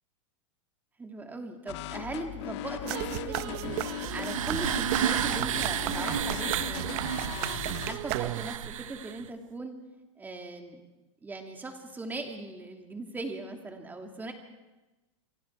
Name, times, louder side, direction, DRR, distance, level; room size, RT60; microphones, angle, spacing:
voice 1, 1.0-3.8 4.1-7.6 7.8-9.8 10.2-10.8 11.2-14.3, right 3 dB, 10° right, 3 dB, 2.8 m, -39 dB
sound 1, 1.7-8.0, left 14 dB, 60° left, 1.5 m, -38 dB
sound 2, 2.9-8.7, right 16 dB, 50° right, 1.0 m, -35 dB
sound 3, 3.4-9.3, right 11 dB, 85° right, 1.1 m, -32 dB
28.5 x 24.0 x 4.7 m, 1.1 s
supercardioid pair, 140°, 17 cm